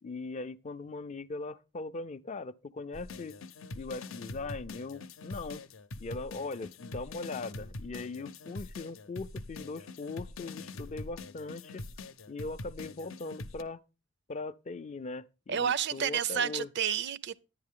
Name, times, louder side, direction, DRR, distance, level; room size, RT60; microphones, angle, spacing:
voice 1, 0.0-3.4 3.7-5.6 6.0-11.8 12.3-13.8 14.3-16.7, left 3 dB, 35° left, 0.4 m, -40 dB
sound 1, 2.9-13.6, left 2 dB, 85° left, 0.7 m, -44 dB
voice 2, 15.5-17.4, right 8 dB, 60° right, 0.5 m, -30 dB
10.5 x 9.3 x 3.6 m
head